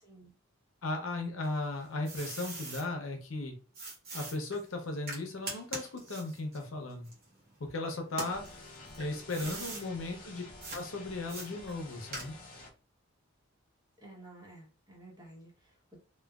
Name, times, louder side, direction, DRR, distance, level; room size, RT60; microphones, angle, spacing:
voice 1, 0.8-3.6 4.1-7.1 7.7-8.4 9.0-10.4 10.7-12.3, left 2 dB, 75° left, 3 dB, 0.7 m, -36 dB
sound 1, 1.4-2.9 3.7-7.7 8.1-9.9 10.6-10.8 11.3-12.6, right 2 dB, 45° right, 0.8 m, -42 dB
sound 2, 8.3-12.7, left 2 dB, 40° left, 0.5 m, -50 dB
voice 2, 9.4-10.0 14.0-16.0, right 2 dB, 20° right, -3 dB, 1.0 m, -52 dB
3.0 x 2.2 x 2.3 m, 0.37 s
head